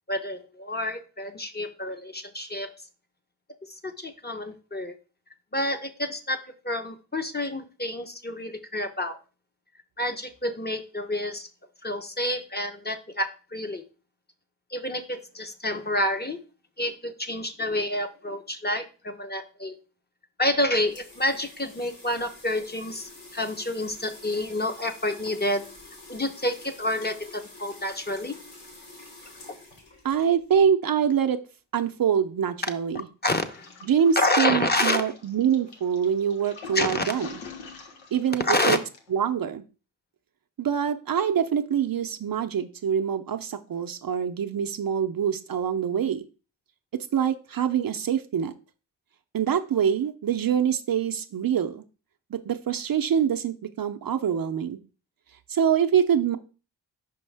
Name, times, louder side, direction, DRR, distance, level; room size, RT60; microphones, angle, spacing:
voice 1, 0.1-2.7 3.7-4.9 5.5-6.4 6.6-9.2 10.0-11.5 11.8-13.8 14.7-16.4 16.8-19.7 20.4-25.7 26.1-28.4 33.2-33.7 34.2-35.1 36.7-37.1 38.4-38.8, left 1 dB, 20° left, 6 dB, 0.9 m, -28 dB
sound 1, 20.4-30.7, left 2 dB, 70° left, 3.1 m, -47 dB
voice 2, 30.0-31.4 31.7-33.1 33.8-37.4 38.1-38.8 39.1-39.6 40.6-46.2 46.9-48.5 49.3-51.8 52.3-54.8 55.5-56.4, right 8 dB, 50° right, 7 dB, 0.6 m, -25 dB
Toilet flush, 33.5-39.2, left 5 dB, 85° left, 1.1 m, -44 dB
5.4 x 5.3 x 3.4 m, 0.34 s
cardioid pair, 55°, 45 cm